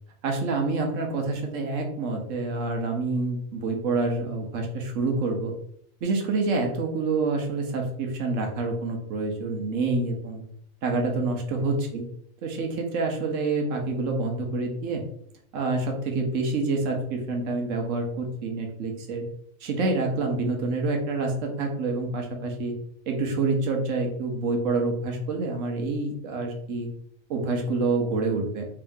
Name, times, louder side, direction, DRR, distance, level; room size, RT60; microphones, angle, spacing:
voice 1, 0.2-5.5 6.0-10.4 10.8-12.1 12.4-15.0 15.5-19.3 19.6-22.8 23.1-26.9 27.3-28.7, right 3 dB, 65° right, 2 dB, 1.1 m, -27 dB
3.5 x 2.9 x 3.5 m, 0.69 s
omnidirectional pair, 1.5 m